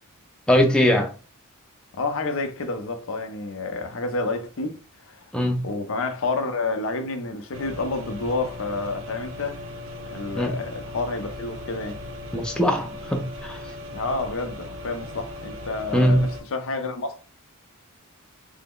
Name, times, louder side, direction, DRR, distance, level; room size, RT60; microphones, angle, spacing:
voice 1, 0.5-1.1 5.3-5.6 10.3-10.6 12.3-13.6 15.9-16.3, equal, 5° left, 0.4 m, -21 dB
voice 2, 1.9-4.8 5.0-5.3 5.6-9.7 10.1-12.0 13.9-17.2, left 3 dB, 65° left, 0.6 m, -29 dB
sound 1, 7.5-16.4, left 1 dB, 70° right, 0.6 m, -38 dB
3.3 x 2.0 x 3.7 m
head